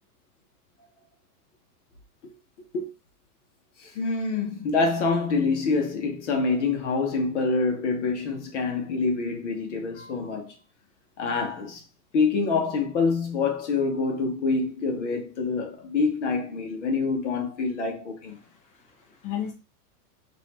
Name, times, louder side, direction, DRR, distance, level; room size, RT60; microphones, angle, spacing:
voice 1, 3.8-10.5 11.2-11.8 12.1-18.4, left 4 dB, 45° left, 1.1 m, -26 dB
voice 2, 18.4-19.5, left 10 dB, 25° left, 0.8 m, -35 dB
4.1 x 2.7 x 4.1 m
supercardioid pair, 180°, 48 cm